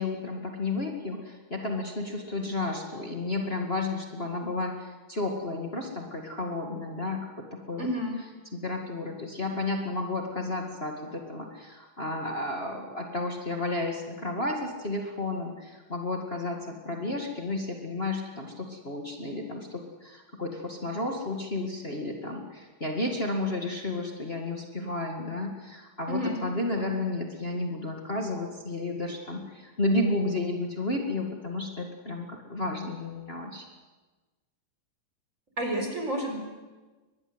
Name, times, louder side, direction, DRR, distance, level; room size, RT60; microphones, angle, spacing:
voice 1, 0.0-7.9 8.5-33.6, left 2 dB, 80° left, 1 dB, 0.5 m, -32 dB
voice 2, 7.8-8.2 26.1-26.4 26.8-26.9 35.6-36.4, equal, 20° right, 3 dB, 4.3 m, -30 dB
23.5 x 21.0 x 8.1 m, 1.3 s
omnidirectional pair, 5.1 m